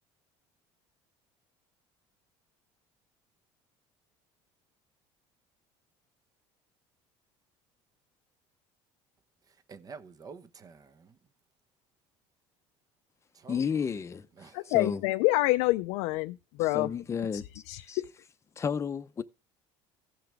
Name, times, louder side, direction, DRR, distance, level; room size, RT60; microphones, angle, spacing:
voice 1, 9.5-11.2 13.3-13.7 14.4-14.8, right 5 dB, 35° right, 1.0 m, -49 dB
voice 2, 13.5-14.2 14.7-15.0 16.7-18.0 18.6-19.2, left 6 dB, 25° left, 0.7 m, -32 dB
voice 3, 14.5-16.9 17.3-17.4 17.7-18.1, left 20 dB, 85° left, 0.5 m, -27 dB
16.0 x 5.9 x 3.4 m
cardioid pair, 125°, 11 cm